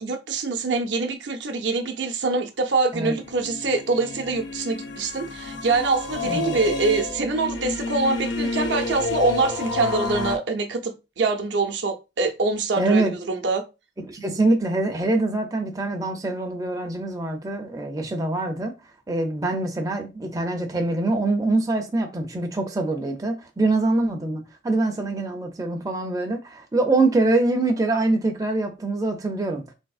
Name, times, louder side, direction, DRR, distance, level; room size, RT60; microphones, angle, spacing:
voice 1, 0.0-13.6, right 3 dB, 70° right, 0.6 m, -24 dB
sound 1, 3.1-10.4, left 3 dB, 80° left, 0.6 m, -30 dB
voice 2, 6.2-6.6 12.8-13.1 14.0-18.7 19.1-29.7, right 2 dB, 20° right, 0.4 m, -24 dB
3.4 x 2.7 x 2.4 m
head